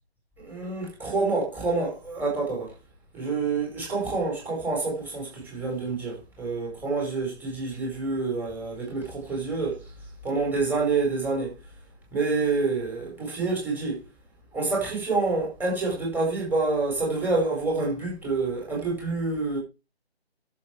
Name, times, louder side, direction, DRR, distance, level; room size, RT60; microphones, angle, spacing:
voice 1, 0.4-2.7 3.1-9.8 10.2-11.5 12.1-14.0 14.5-19.6, right 3 dB, 5° right, 4.9 m, -27 dB
11.0 x 7.6 x 4.9 m
figure-of-eight pair, 150°, 32 cm